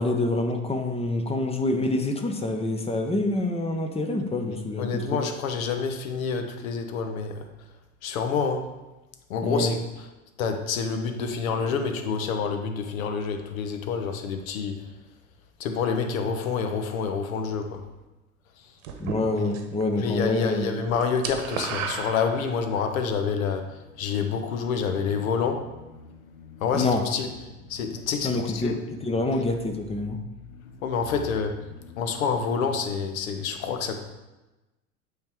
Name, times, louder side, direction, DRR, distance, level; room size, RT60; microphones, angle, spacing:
voice 1, 0.0-5.0 9.4-9.7 19.0-20.8 26.7-27.0 28.2-30.2, left 2 dB, 15° left, 5 dB, 0.8 m, -26 dB
voice 2, 4.8-7.5 8.0-8.7 9.3-9.8 10.4-14.9 15.6-17.8 20.0-28.8 30.4-34.0, left 5 dB, 65° left, 6 dB, 1.0 m, -28 dB
sound 1, 18.8-19.8 20.1-20.5 20.7-22.8, right 6 dB, 55° right, 1.1 m, -34 dB
8.6 x 3.9 x 4.6 m, 1.1 s
figure-of-eight pair, 70°, 44 cm